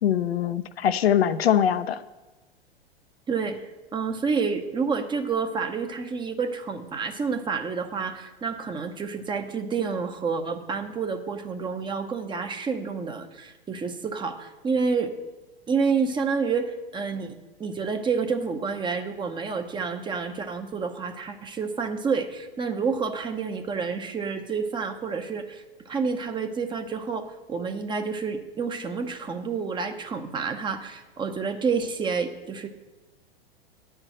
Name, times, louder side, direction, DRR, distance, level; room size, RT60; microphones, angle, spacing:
voice 1, 0.0-2.0, left 9 dB, 75° left, 11 dB, 0.6 m, -22 dB
voice 2, 3.3-15.1 15.7-32.7, right 5 dB, 15° right, 6 dB, 0.7 m, -29 dB
9.6 x 4.5 x 7.8 m, 1.1 s
figure-of-eight pair, 100°, 31 cm